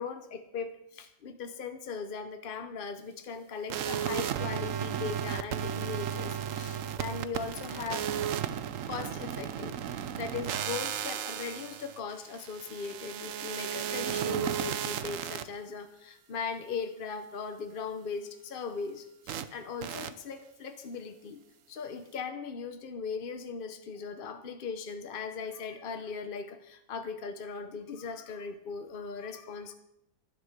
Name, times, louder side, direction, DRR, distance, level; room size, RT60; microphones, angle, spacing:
voice 1, 0.0-8.1 8.9-21.4 21.7-29.7, left 5 dB, 60° left, 8 dB, 0.5 m, -39 dB
sound 1, 3.7-15.4 19.3-19.4 19.8-20.1, right 9 dB, 70° right, 0.7 m, -34 dB
11.5 x 10.5 x 6.6 m, 0.82 s
omnidirectional pair, 2.1 m